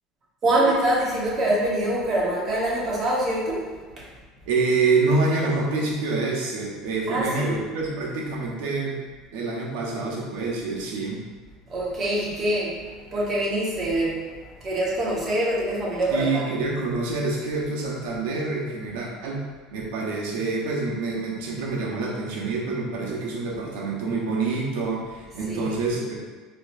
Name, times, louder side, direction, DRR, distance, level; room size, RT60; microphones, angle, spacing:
voice 1, 0.4-3.7 4.0-4.1 7.1-7.6 11.7-16.4 25.5-25.8, right 1 dB, 35° right, -5 dB, 1.1 m, -25 dB
voice 2, 4.5-9.0 9.3-11.2 16.1-19.4 19.7-26.2, right 3 dB, 80° right, -2 dB, 0.8 m, -26 dB
4.0 x 2.8 x 2.6 m, 1.4 s
supercardioid pair, 125°, 0 cm